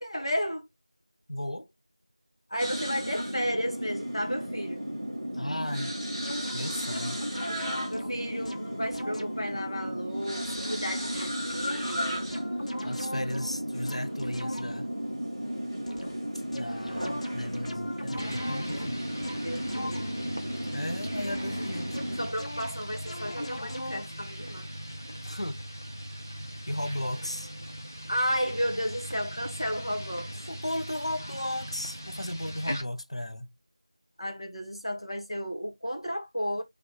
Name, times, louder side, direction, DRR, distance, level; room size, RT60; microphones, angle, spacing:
voice 1, 0.0-0.7 2.5-4.8 7.9-12.2 19.4-20.4 22.2-24.7 28.1-30.3 34.2-36.6, equal, 50° left, 1.4 m, -33 dB
voice 2, 1.3-1.7 5.3-5.9 6.5-7.2 12.8-14.9 16.5-19.1 20.7-22.0 25.2-25.6 26.7-27.5 30.5-33.5, left 1 dB, 65° left, 0.7 m, -35 dB
sound 1, 2.6-22.3, equal, 15° right, 1.0 m, -34 dB
sound 2, 6.2-9.5 10.5-15.0 15.9-16.3 16.5-20.3 21.2-24.1, left 1 dB, 90° left, 1.3 m, -41 dB
sound 3, 18.2-32.8, equal, 25° left, 0.5 m, -40 dB
3.4 x 3.0 x 3.8 m
figure-of-eight pair, 180°, 4 cm